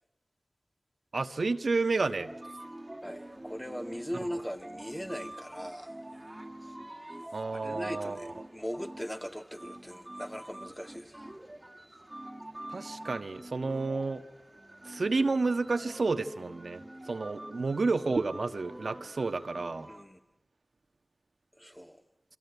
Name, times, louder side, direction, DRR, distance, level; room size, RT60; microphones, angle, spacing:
voice 1, 1.1-2.3 4.1-4.2 7.3-8.3 12.7-14.2 14.8-19.9, right 3 dB, 75° right, 1.4 m, -30 dB
sound 1, 2.2-20.0, right 1 dB, 20° right, 2.1 m, -46 dB
voice 2, 3.0-5.9 7.5-11.1 19.9-20.2 21.6-22.0, equal, 5° left, 1.8 m, -39 dB
28.0 x 25.0 x 8.2 m
wide cardioid pair, 60°, 0 cm